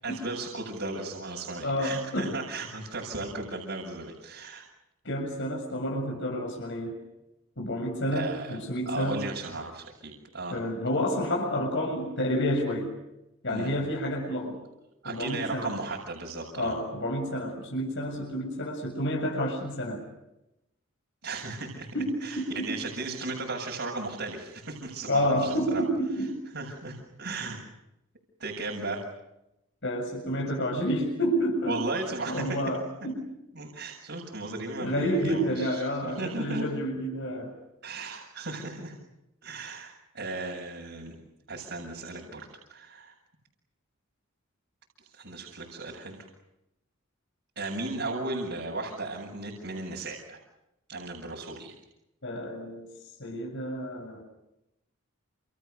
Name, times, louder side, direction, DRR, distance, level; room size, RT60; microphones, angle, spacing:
voice 1, 0.0-4.6 8.1-8.6 8.9-10.6 13.5-13.7 15.0-16.8 21.2-21.9 22.2-25.8 26.5-27.6 28.4-29.0 31.6-32.6 33.6-36.7 37.8-39.0 39.4-41.2 41.5-43.1 45.0-46.2 47.6-50.4 50.9-51.7, right 2 dB, 60° right, -1 dB, 7.3 m, -36 dB
voice 2, 1.6-2.4 5.0-7.0 7.6-9.2 10.5-12.9 13.4-14.6 15.0-15.8 16.6-20.0 21.9-22.7 25.1-26.4 29.8-31.8 32.3-33.3 34.8-37.5 52.2-52.9 53.2-54.2, equal, 60° left, 0 dB, 7.2 m, -29 dB
30.0 x 29.0 x 6.9 m, 0.89 s
head